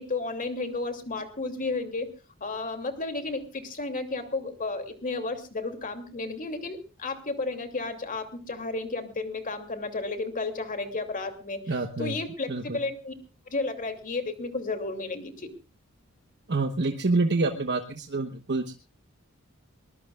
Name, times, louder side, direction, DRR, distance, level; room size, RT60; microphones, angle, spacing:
voice 1, 0.0-2.1 2.4-13.1 13.5-15.5, left 3 dB, 40° left, 6 dB, 2.7 m, -33 dB
voice 2, 11.7-12.2 12.5-12.8 16.5-18.8, right 3 dB, 55° right, 6 dB, 1.1 m, -27 dB
22.0 x 21.0 x 2.4 m, 0.33 s
head